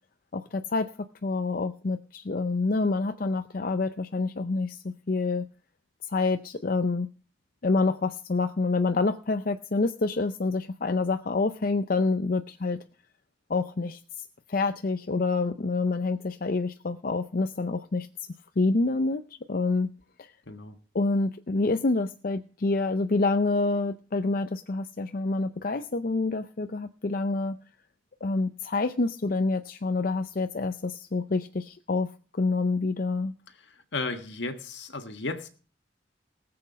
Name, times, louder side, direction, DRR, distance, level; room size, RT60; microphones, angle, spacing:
voice 1, 0.3-0.9 1.2-5.5 6.1-7.1 7.6-12.8 13.5-14.0 14.5-18.1 18.6-19.2 19.5-19.9 20.2-20.3 20.9-27.6 28.2-33.3, left 3 dB, 50° left, 9 dB, 0.5 m, -27 dB
voice 2, 33.9-35.5, left 3 dB, 75° left, 7 dB, 1.5 m, -34 dB
18.5 x 7.7 x 5.1 m, 0.39 s
head